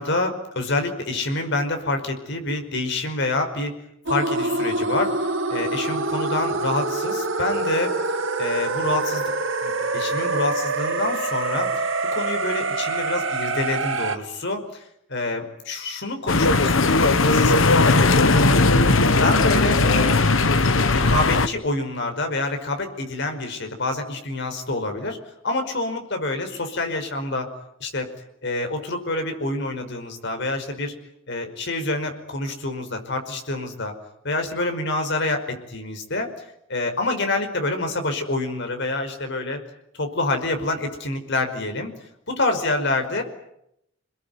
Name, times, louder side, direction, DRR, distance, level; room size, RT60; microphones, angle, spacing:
voice 1, 0.0-3.7 4.1-7.9 8.4-9.2 9.6-11.9 12.1-18.2 18.5-18.8 19.2-20.2 20.9-25.2 25.4-27.5 27.8-28.1 28.4-30.9 31.3-33.9 34.2-36.3 36.7-39.6 40.0-41.9 42.3-43.2, left 2 dB, 65° left, 5 dB, 5.3 m, -27 dB
sound 1, 4.1-14.2, right 3 dB, 75° right, 2.5 m, -25 dB
sound 2, 16.3-21.5, left 3 dB, 90° left, 1.4 m, -18 dB
28.5 x 21.5 x 9.5 m, 0.78 s
head